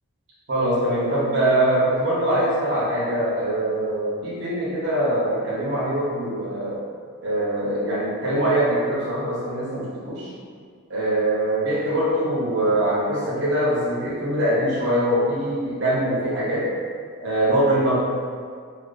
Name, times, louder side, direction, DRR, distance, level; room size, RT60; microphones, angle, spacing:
voice 1, 0.5-6.8 7.2-10.3 10.9-16.6 17.2-17.9, right 1 dB, 55° right, -8 dB, 0.7 m, -23 dB
2.4 x 2.3 x 2.3 m, 2.1 s
head